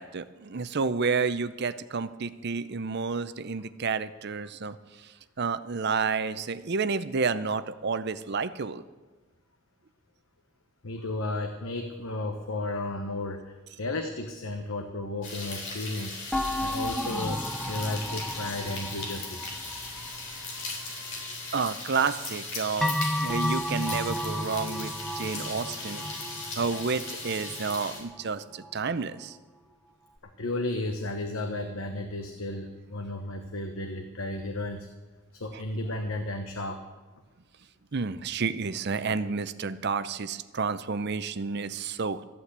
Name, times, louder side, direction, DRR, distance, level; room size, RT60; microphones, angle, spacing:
voice 1, 0.0-4.8 5.4-8.8 21.5-26.1 26.6-29.4 37.9-42.2, right 5 dB, 55° right, 13 dB, 0.6 m, -30 dB
voice 2, 10.8-16.2 16.6-19.5 25.0-25.5 26.0-26.3 30.4-34.9 35.3-36.8, left 2 dB, 80° left, 5 dB, 1.0 m, -34 dB
sound 1, 15.2-28.0, left 3 dB, 65° left, 3.5 m, -38 dB
sound 2, 16.3-20.8 22.8-28.2 28.6-28.7, equal, ahead, 0.5 m, -33 dB
14.0 x 8.6 x 8.1 m, 1.2 s
head